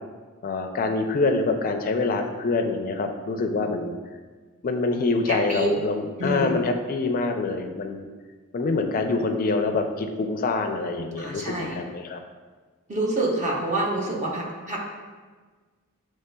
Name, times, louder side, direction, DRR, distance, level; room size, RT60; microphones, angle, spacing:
voice 1, 0.4-3.9 4.6-8.1 8.5-12.2, left 3 dB, 40° left, 5 dB, 0.4 m, -25 dB
voice 2, 5.3-5.7 6.2-6.6 11.2-11.8 12.9-14.8, right 2 dB, 35° right, -2 dB, 0.8 m, -27 dB
6.6 x 3.1 x 2.2 m, 1.4 s
head